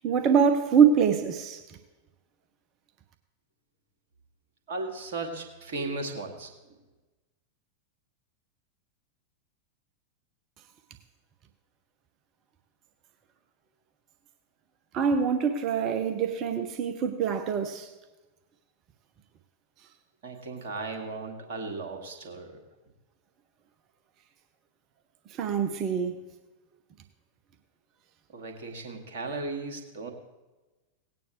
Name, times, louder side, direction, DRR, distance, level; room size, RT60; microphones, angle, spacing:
voice 1, 0.0-1.6 14.9-17.9 25.3-26.2, right 7 dB, 35° right, 0.9 m, -24 dB
voice 2, 4.7-6.8 20.2-22.6 28.3-30.1, right 3 dB, 55° right, 2.1 m, -36 dB
18.0 x 9.2 x 3.1 m
figure-of-eight pair, 90°, 0 cm